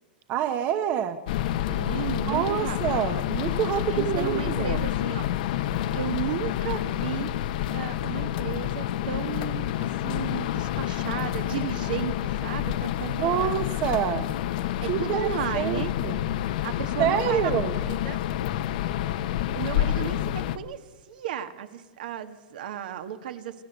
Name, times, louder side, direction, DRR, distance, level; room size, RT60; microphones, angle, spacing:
voice 1, 0.3-1.2 2.3-4.8 13.2-14.3 14.9-15.2 15.5-16.2 17.0-17.7, right 10 dB, 30° right, 9 dB, 1.0 m, -26 dB
sound 1, 1.3-20.6, left 12 dB, 55° left, 1.0 m, -28 dB
voice 2, 1.6-2.8 3.9-5.3 5.9-7.3 7.7-13.5 14.8-15.9 16.6-18.2 19.5-23.6, right 10 dB, 65° right, 9 dB, 1.7 m, -34 dB
27.5 x 13.0 x 8.1 m, 1.3 s
supercardioid pair, 155°, 5 cm